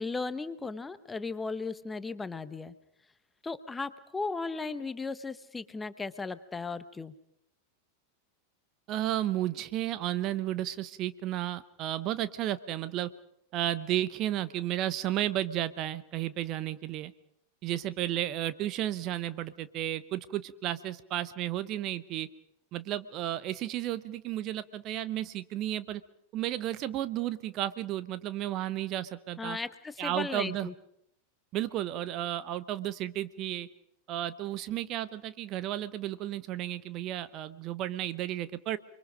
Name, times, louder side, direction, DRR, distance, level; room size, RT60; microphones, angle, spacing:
voice 1, 0.0-2.7 3.4-7.1 29.4-30.7, left 4 dB, 10° left, 13 dB, 1.1 m, -36 dB
voice 2, 8.9-13.1 13.5-17.1 17.6-22.3 22.7-26.0 26.3-29.6 30.0-30.7 31.5-33.7 34.1-38.8, right 13 dB, 35° right, 15 dB, 0.8 m, -33 dB
29.0 x 23.0 x 5.2 m, 0.74 s
figure-of-eight pair, 90°, 0 cm